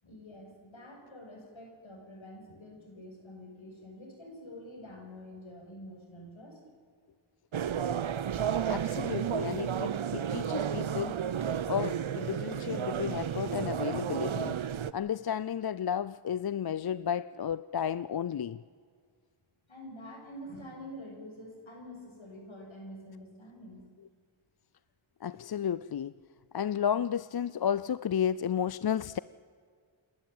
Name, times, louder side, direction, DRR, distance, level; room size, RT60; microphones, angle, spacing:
voice 1, 0.0-6.6 19.7-23.8, left 1 dB, 70° left, 6.8 m, -47 dB
sound 1, 7.5-14.9, right 8 dB, 70° right, 0.8 m, -32 dB
voice 2, 8.7-11.2 11.7-14.6 14.9-18.6 25.2-26.1 26.5-29.2, left 8 dB, 50° left, 0.5 m, -32 dB
sound 2, 9.2-14.6, left 1 dB, 35° left, 6.9 m, -60 dB
28.0 x 12.0 x 8.8 m
wide cardioid pair, 60°, 49 cm